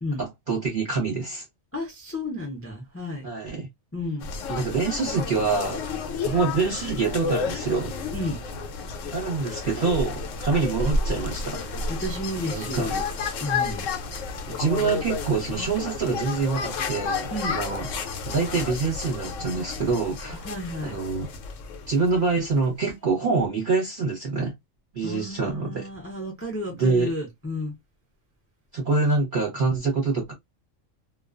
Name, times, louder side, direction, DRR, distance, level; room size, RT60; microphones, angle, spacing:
voice 1, 0.2-1.4 3.2-3.7 4.5-5.8 6.2-7.9 9.1-11.6 12.4-12.9 14.5-17.9 18.3-20.4 20.8-21.3 21.9-24.5 24.9-25.9 26.8-27.1 28.7-30.3, right 4 dB, 45° right, 0.8 m, -26 dB
voice 2, 1.7-3.3 3.9-4.3 8.1-8.4 12.0-13.0 13.4-13.9 17.3-17.6 20.4-21.0 25.0-27.7, left 1 dB, 20° left, 0.4 m, -32 dB
sound 1, 4.2-22.6, left 4 dB, 75° left, 0.9 m, -31 dB
2.3 x 2.2 x 2.4 m
omnidirectional pair, 1.4 m